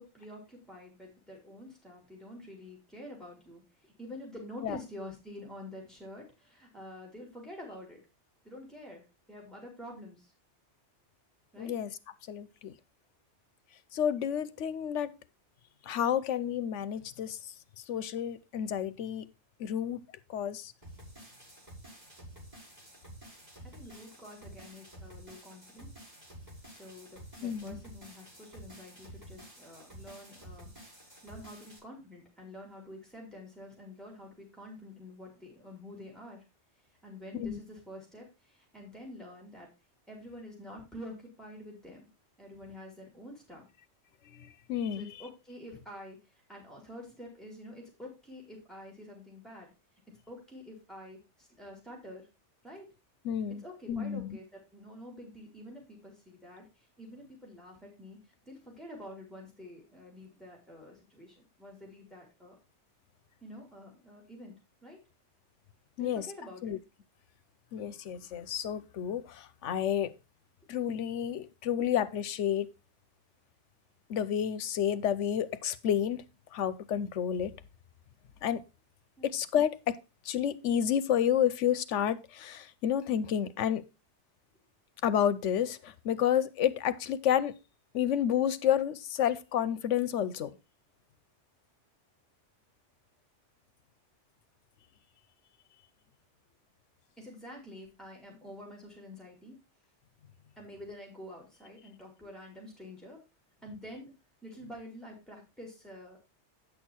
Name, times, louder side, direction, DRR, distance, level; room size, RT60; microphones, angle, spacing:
voice 1, 0.0-8.0 8.4-10.3 11.5-11.7 23.6-25.9 26.7-30.7 31.2-36.4 37.0-39.7 40.1-42.1 42.4-43.7 45.0-46.2 46.5-49.7 50.3-52.3 52.6-52.9 53.6-62.5 63.4-64.6 64.8-65.0 66.0-66.8 79.2-79.3 97.2-99.6 100.6-103.2 103.6-104.1 104.4-106.2, left 1 dB, ahead, 4.3 m, -48 dB
voice 2, 11.6-11.9 12.3-12.7 13.9-15.1 15.8-19.3 19.6-20.7 27.4-27.8 37.3-37.6 44.3-45.1 53.2-54.4 66.0-66.3 66.6-66.8 67.7-70.1 70.7-72.7 74.1-76.2 76.5-77.5 78.4-78.6 79.2-80.0 80.2-83.8 85.0-87.6 87.9-90.6, left 9 dB, 85° left, 1.0 m, -30 dB
sound 1, 20.8-31.8, right 1 dB, 35° right, 6.8 m, -50 dB
9.3 x 6.5 x 4.3 m
omnidirectional pair, 1.2 m